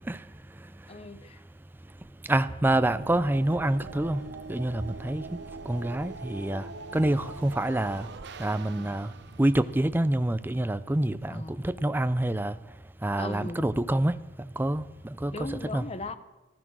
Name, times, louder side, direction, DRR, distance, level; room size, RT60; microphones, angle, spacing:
voice 1, 0.9-1.4 11.3-11.6 13.2-13.7 15.3-16.2, left 2 dB, 30° left, 12 dB, 0.6 m, -38 dB
voice 2, 2.3-6.7 6.9-8.1 8.4-9.1 9.4-12.6 13.0-15.8, right 1 dB, 10° right, 13 dB, 0.4 m, -27 dB
sound 1, 2.6-10.7, right 3 dB, 60° right, 0.8 m, -43 dB
15.0 x 12.5 x 6.2 m, 1.1 s
head